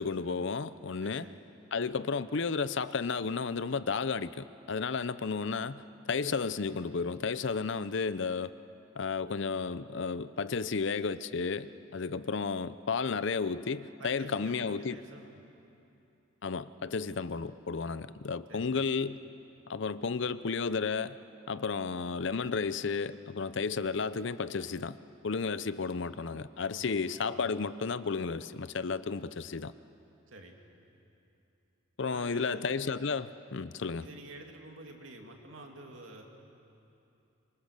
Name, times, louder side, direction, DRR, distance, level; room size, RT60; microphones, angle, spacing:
voice 1, 0.0-1.2 1.7-8.5 9.0-15.0 16.4-19.2 19.7-21.2 21.5-25.0 25.2-29.7 32.0-34.1, left 5 dB, 60° left, 15 dB, 0.6 m, -33 dB
voice 2, 1.0-1.4 14.0-15.4 18.5-18.7 26.7-26.9 27.3-27.5 30.3-30.6 32.0-32.7 34.0-36.2, right 2 dB, 65° right, 2 dB, 2.6 m, -49 dB
26.0 x 24.0 x 6.7 m, 2.8 s
head